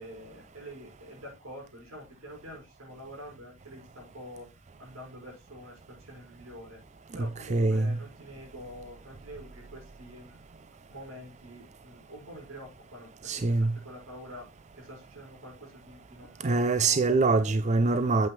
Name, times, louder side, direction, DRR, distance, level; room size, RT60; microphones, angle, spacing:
voice 1, 0.0-4.5 4.8-6.8 7.1-10.4 10.9-14.5 14.7-17.0 17.4-17.6, equal, 75° right, 5.9 m, -46 dB
voice 2, 7.2-8.0 13.2-13.7 16.4-18.3, right 3 dB, 35° right, 0.4 m, -24 dB
8.9 x 7.8 x 3.1 m
head